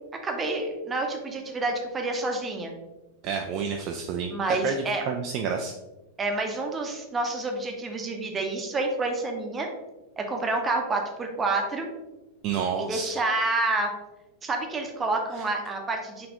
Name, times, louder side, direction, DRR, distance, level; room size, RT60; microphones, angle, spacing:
voice 1, 0.2-2.7 4.3-5.0 6.2-9.7 10.2-11.9 12.8-13.9 14.4-16.3, right 2 dB, 20° right, 3 dB, 0.7 m, -28 dB
voice 2, 3.2-4.3 4.6-5.7 12.4-13.1 15.3-15.4, right 6 dB, 40° right, 3 dB, 0.3 m, -29 dB
4.1 x 3.2 x 2.9 m, 1.0 s
figure-of-eight pair, 90°, 0 cm